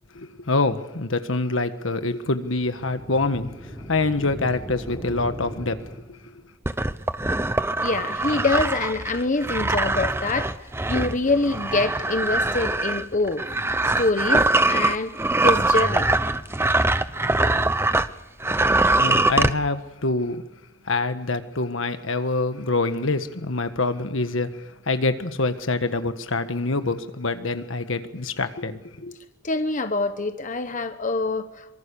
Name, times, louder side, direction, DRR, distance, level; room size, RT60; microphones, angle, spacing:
voice 1, 0.1-3.5 3.9-5.8 6.1-6.2 19.0-20.4 20.9-24.6 24.9-29.2, left 3 dB, 70° left, 9 dB, 1.6 m, -25 dB
sound 1, 2.6-6.4, equal, 10° left, 4.8 m, -38 dB
sound 2, 6.6-18.1 18.4-19.5, right 2 dB, 10° right, 0.8 m, -22 dB
voice 2, 7.8-10.5 10.9-13.4 14.0-15.1 15.4-16.1 29.4-31.8, left 3 dB, 40° left, 9 dB, 1.1 m, -25 dB
25.5 x 23.5 x 7.0 m, 1.0 s
head